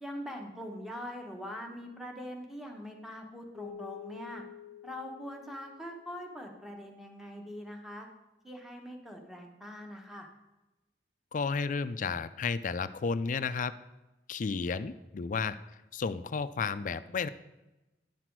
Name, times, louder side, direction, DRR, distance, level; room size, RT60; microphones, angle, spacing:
voice 1, 0.0-4.4 4.8-8.1 8.4-10.3, equal, ahead, 2 dB, 1.1 m, -43 dB
Keyboard (musical), 3.6-6.5, left 9 dB, 75° right, 2.9 m, -49 dB
voice 2, 11.3-13.7 14.3-15.6 15.9-17.3, left 5 dB, 45° left, 13 dB, 0.4 m, -32 dB
10.5 x 5.9 x 4.6 m, 1.0 s
head